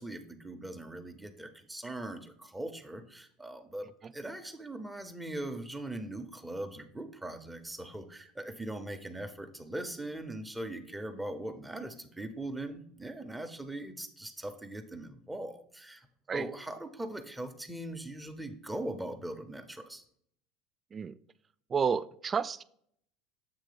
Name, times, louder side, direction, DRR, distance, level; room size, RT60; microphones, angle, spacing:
voice 1, 0.0-20.0, right 1 dB, 10° right, 7 dB, 0.7 m, -40 dB
voice 2, 21.7-22.6, right 6 dB, 30° right, 14 dB, 0.3 m, -31 dB
7.6 x 3.0 x 5.1 m, 0.65 s
supercardioid pair, 95°, 0 cm